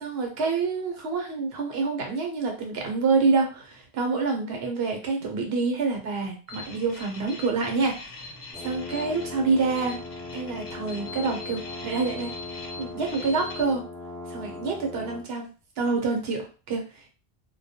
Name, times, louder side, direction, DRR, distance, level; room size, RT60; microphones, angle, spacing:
voice 1, 0.0-8.2 8.6-10.0 10.3-12.3 12.8-13.8 14.3-17.1, right 4 dB, 70° right, 2 dB, 1.0 m, -27 dB
sound 1, 6.5-13.6, left 3 dB, 65° left, 0.8 m, -42 dB
sound 2, 8.5-15.3, left 3 dB, ahead, 0.8 m, -39 dB
2.2 x 2.2 x 2.7 m, 0.34 s
omnidirectional pair, 1.1 m